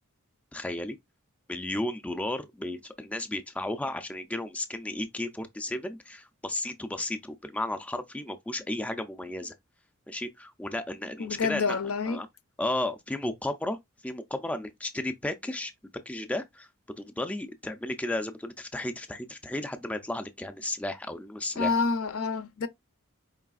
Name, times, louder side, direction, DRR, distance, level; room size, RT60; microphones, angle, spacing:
voice 1, 0.5-1.0 1.5-9.5 10.1-11.8 12.1-12.3 12.6-13.8 14.0-15.7 16.1-21.7, left 1 dB, 5° left, 0.3 m, -34 dB
voice 2, 11.2-12.2 21.6-22.7, left 4 dB, 70° left, 0.6 m, -28 dB
4.8 x 3.2 x 2.3 m
head